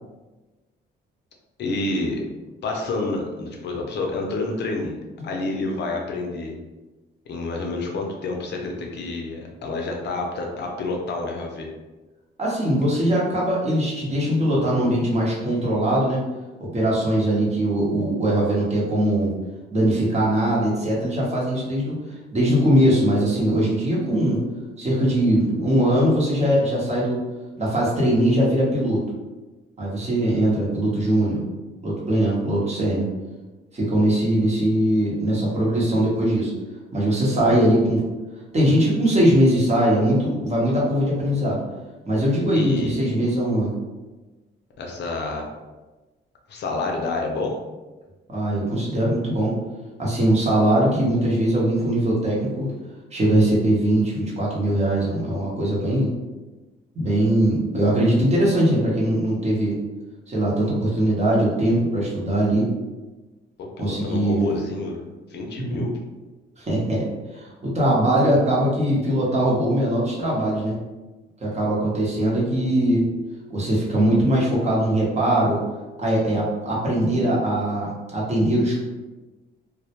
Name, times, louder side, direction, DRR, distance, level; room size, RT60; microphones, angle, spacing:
voice 1, 1.6-2.2 2.6-6.5 7.3-11.7 42.5-43.0 44.8-45.5 46.5-47.5 63.6-65.0 65.3-65.9, left 3 dB, 60° left, 1 dB, 0.5 m, -28 dB
voice 2, 12.4-16.2 16.6-19.3 19.7-21.9 22.3-24.4 24.8-27.2 27.6-29.0 29.8-31.4 31.8-33.1 33.7-36.5 36.9-38.0 38.5-41.6 42.1-43.7 48.3-49.5 50.0-52.7 53.1-56.1 56.9-59.8 60.3-62.7 63.8-64.4 65.6-65.8 66.6-67.1 67.3-70.8 71.4-73.0 73.5-75.6 76.0-78.8, right 1 dB, 35° right, -5 dB, 0.9 m, -21 dB
2.1 x 2.0 x 2.8 m, 1.2 s
cardioid pair, 90°, 20 cm